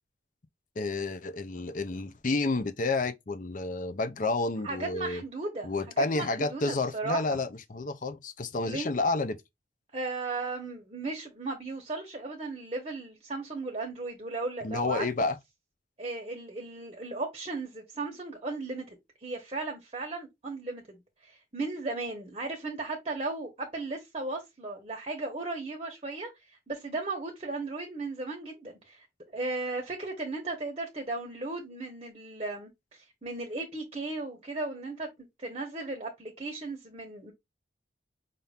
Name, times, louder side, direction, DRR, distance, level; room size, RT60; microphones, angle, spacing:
voice 1, 0.8-5.2 5.6-9.4 14.6-15.4, left 3 dB, 45° left, 0.6 m, -30 dB
voice 2, 4.6-7.4 8.6-8.9 9.9-15.0 16.0-18.9 19.2-26.3 26.7-29.1 29.3-35.1 35.4-37.3, right 3 dB, 30° right, 1.2 m, -36 dB
5.7 x 2.7 x 3.4 m
head